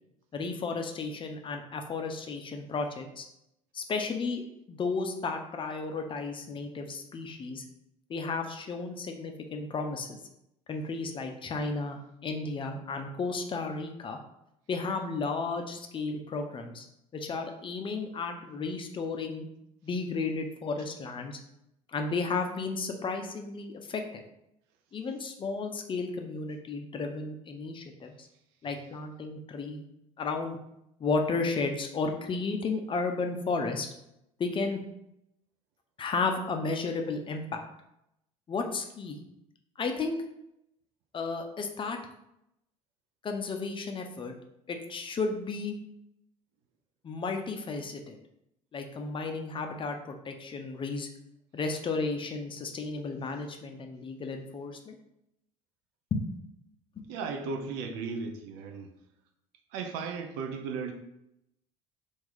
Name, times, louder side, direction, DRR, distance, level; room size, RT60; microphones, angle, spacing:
voice 1, 0.3-3.3 3.7-4.4 4.7-7.6 8.1-10.2 10.7-14.2 14.7-16.9 17.1-19.5 19.8-21.4 21.9-24.0 24.9-28.3 28.6-29.8 30.2-30.6 31.0-33.9 34.4-34.8 36.0-37.6 38.5-39.2 39.8-40.2 41.1-42.0 43.2-44.3 44.7-45.7 47.0-48.2 48.7-51.1 51.5-55.0 56.1-56.2, left 4 dB, 30° left, 4 dB, 0.5 m, -33 dB
voice 2, 57.1-58.9 59.7-60.9, right 5 dB, 65° right, 4 dB, 0.5 m, -35 dB
2.9 x 2.6 x 3.8 m, 0.83 s
hypercardioid pair, 70°, 17 cm